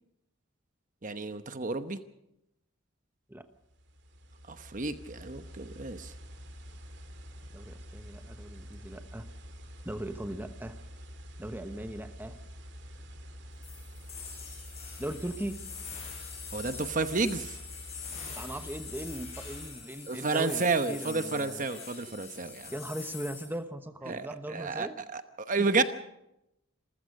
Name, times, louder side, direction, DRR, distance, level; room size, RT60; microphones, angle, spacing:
voice 1, 1.0-2.0 4.5-6.1 16.5-17.6 20.1-22.7 24.1-25.2 25.5-25.8, right 3 dB, 40° right, 10 dB, 1.0 m, -31 dB
sound 1, 3.6-19.7, equal, 60° right, 2.5 m, -47 dB
voice 2, 7.5-9.2 9.8-10.8 11.4-12.4 15.0-15.6 18.3-21.7 22.7-25.0, right 1 dB, 10° right, 8 dB, 1.0 m, -39 dB
sound 2, 13.6-23.5, left 6 dB, 35° left, 6.9 m, -44 dB
27.0 x 15.0 x 6.6 m, 0.86 s
head